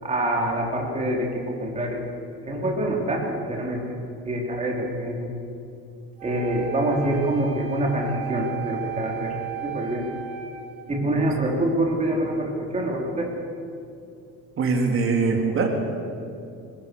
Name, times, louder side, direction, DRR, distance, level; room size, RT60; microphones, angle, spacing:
voice 1, 0.0-2.1 2.4-3.9 4.2-5.3 6.2-10.1 10.9-13.3, right 1 dB, 20° right, -1 dB, 4.2 m, -26 dB
Wind instrument woodwind instrument, 6.2-11.3, right 12 dB, 80° right, 3.3 m, -36 dB
voice 2, 14.6-15.7, right 4 dB, 35° right, 1 dB, 3.5 m, -22 dB
22.5 x 20.5 x 7.1 m, 2.5 s
cardioid pair, 155°, 35 cm